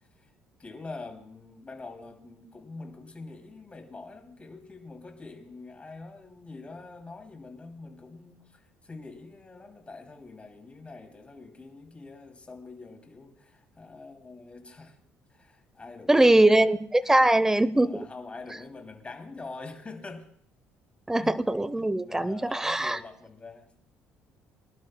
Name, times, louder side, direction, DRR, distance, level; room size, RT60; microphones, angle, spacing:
voice 1, 0.6-15.0 15.3-16.6 17.0-17.2 17.7-20.2 21.1-21.4 21.7-23.7, left 3 dB, 25° left, 3 dB, 2.7 m, -45 dB
voice 2, 16.1-18.1 21.1-23.0, right 1 dB, 10° right, 16 dB, 0.7 m, -22 dB
23.5 x 11.5 x 2.2 m, 0.62 s
supercardioid pair, 70°, 5 cm